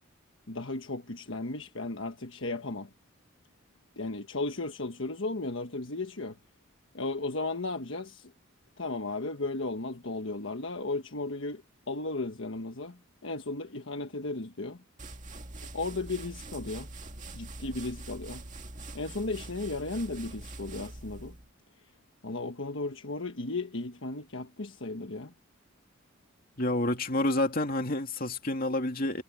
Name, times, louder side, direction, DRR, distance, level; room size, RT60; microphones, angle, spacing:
voice 1, 0.5-2.9 4.0-6.4 6.9-8.3 8.8-11.6 11.9-14.8 15.7-16.9 17.3-18.4 18.9-21.4 22.2-25.3, left 2 dB, 60° left, 1.3 m, -35 dB
sound 1, 15.0-21.5, right 2 dB, 35° right, 2.1 m, -44 dB
voice 2, 26.6-29.2, left 1 dB, 40° left, 2.7 m, -29 dB
head